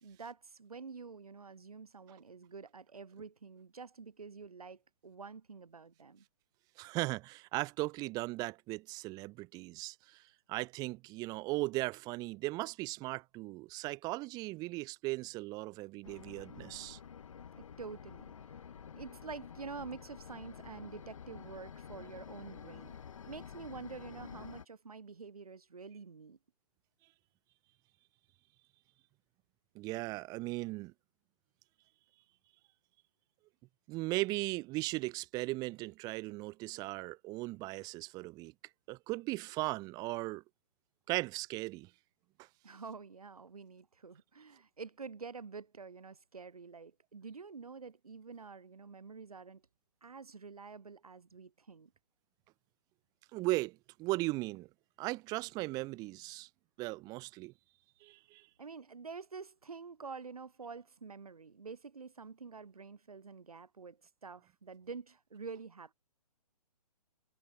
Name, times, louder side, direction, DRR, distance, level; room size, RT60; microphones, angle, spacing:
voice 1, 0.0-6.2 17.6-18.7 18.9-23.0 23.3-26.4 42.6-49.6 50.0-51.9 58.6-65.9, right 5 dB, 65° right, 4.3 m, -48 dB
voice 2, 6.8-10.2 10.5-17.0 29.7-30.9 33.9-38.5 38.9-40.4 41.1-41.9 53.3-54.7 55.0-56.5 56.8-57.5 58.0-58.5, right 21 dB, 20° right, 1.3 m, -37 dB
sound 1, 16.0-24.7, left 7 dB, 55° left, 3.2 m, -50 dB
figure-of-eight pair, 130°, 20 cm